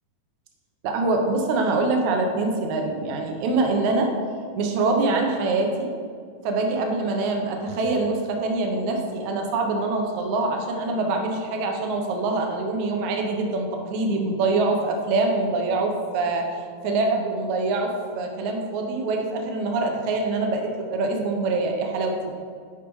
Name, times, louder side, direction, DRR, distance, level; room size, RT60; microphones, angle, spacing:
voice 1, 0.8-4.1 4.6-5.9 6.4-22.2, right 3 dB, 70° right, 2 dB, 2.1 m, -24 dB
12.0 x 4.9 x 3.1 m, 2.1 s
omnidirectional pair, 3.8 m